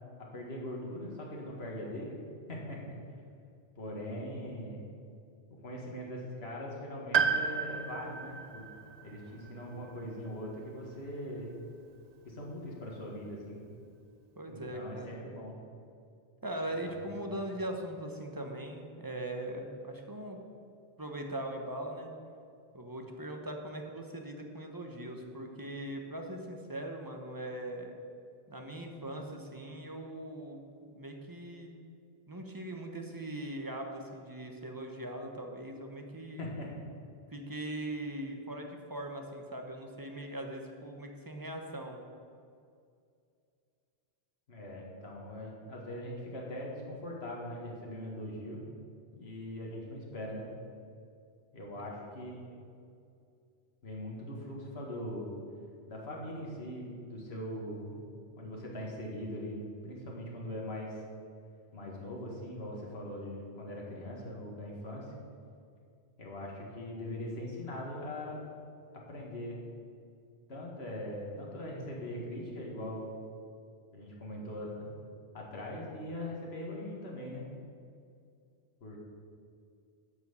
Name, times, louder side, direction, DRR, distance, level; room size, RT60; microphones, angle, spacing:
voice 1, 0.2-2.2 2.5-2.8 3.8-4.8 5.6-8.7 9.0-11.6 12.3-13.6 14.5-15.6 16.8-17.3 36.4-36.7 44.5-48.6 49.1-50.4 51.5-52.7 53.8-55.3 55.9-58.0 58.4-61.0 61.7-65.1 66.2-68.4 69.1-69.6 70.5-73.1 73.9-74.9 75.3-77.5 78.8-79.0, left 1 dB, 65° left, -3 dB, 2.1 m, -41 dB
Piano, 7.1-11.3 12.5-12.6, right 6 dB, 50° right, 0.5 m, -34 dB
voice 2, 14.4-15.2 16.4-20.4 21.0-22.1 22.7-27.9 28.5-31.7 32.3-36.4 37.3-42.0 51.8-51.9, right 1 dB, 20° right, 3 dB, 1.1 m, -40 dB
10.5 x 5.7 x 8.2 m, 2.4 s
omnidirectional pair, 1.1 m